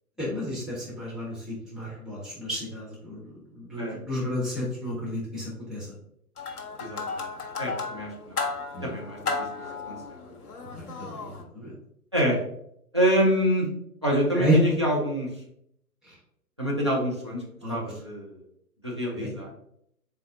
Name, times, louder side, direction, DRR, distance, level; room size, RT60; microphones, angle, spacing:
voice 1, 0.2-3.2 3.5-5.9 8.7-8.9 10.8-11.1 11.5-11.7 14.3-14.6 17.6-17.8 19.2-19.3, right 1 dB, ahead, -9 dB, 1.2 m, -31 dB
sound 1, 6.4-11.4, left 4 dB, 70° left, 0.9 m, -34 dB
voice 2, 6.8-7.3 7.6-8.4 8.8-9.2 9.5-10.3 12.1-12.4 12.9-13.7 14.0-15.3 16.6-17.4 17.7-18.4 18.8-19.5, equal, 20° right, -3 dB, 0.4 m, -26 dB
4.1 x 3.7 x 2.5 m, 0.73 s
figure-of-eight pair, 125°, 47 cm